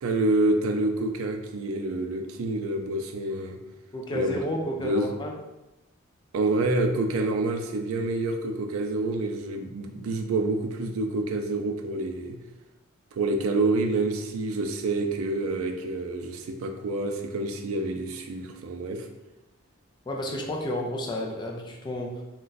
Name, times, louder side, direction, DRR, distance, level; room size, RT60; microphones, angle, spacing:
voice 1, 0.0-3.6 4.1-4.4 4.8-5.1 6.3-12.4 13.1-19.1, right 2 dB, 75° right, 5 dB, 0.4 m, -27 dB
voice 2, 3.9-5.4 20.1-22.2, left 1 dB, 20° left, 0 dB, 0.4 m, -31 dB
2.5 x 2.2 x 3.8 m, 1.0 s
head